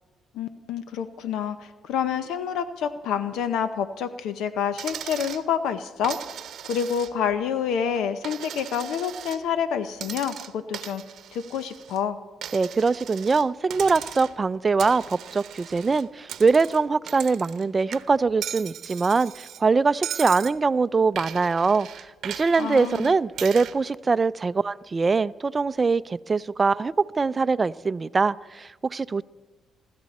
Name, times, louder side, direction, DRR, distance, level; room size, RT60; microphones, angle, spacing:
voice 1, 0.3-6.2 6.6-11.0 11.3-12.2 22.6-23.1, left 8 dB, 85° left, 11 dB, 0.8 m, -28 dB
Coin (dropping), 4.8-5.5 6.0-7.4 7.7-9.4 10.0-12.0 12.4-13.5 13.7-14.4 14.8-17.7 17.9-19.6 20.0-20.6 21.2-23.8, right 10 dB, 70° right, 0.8 m, -38 dB
voice 2, 12.5-29.2, right 4 dB, 30° right, 16 dB, 0.4 m, -23 dB
26.0 x 13.0 x 4.2 m, 1.3 s
cardioid pair, 90°, 0 cm